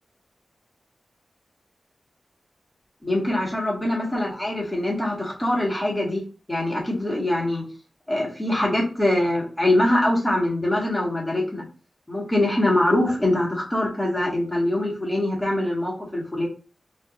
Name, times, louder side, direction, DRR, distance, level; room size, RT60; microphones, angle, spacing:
voice 1, 3.0-6.2 6.5-7.6 8.1-11.6 12.1-16.5, left 1 dB, 15° left, -3 dB, 2.0 m, -23 dB
4.2 x 3.3 x 2.6 m, 0.35 s
wide cardioid pair, 80°, 0 cm